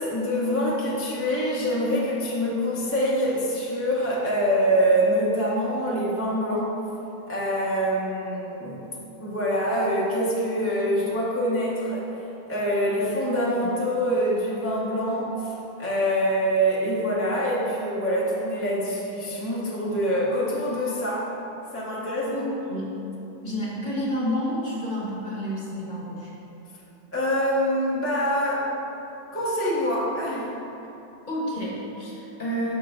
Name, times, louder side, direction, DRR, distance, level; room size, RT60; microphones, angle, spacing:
voice 1, 0.0-6.8 7.3-8.9 9.2-12.1 12.5-21.3 21.7-22.4 27.1-28.7 29.3-30.6, equal, 15° left, -6 dB, 0.5 m, -25 dB
voice 2, 22.3-23.0 23.4-26.3 31.3-32.7, equal, 35° left, -5 dB, 1.0 m, -30 dB
6.4 x 4.6 x 4.5 m, 2.9 s
omnidirectional pair, 1.8 m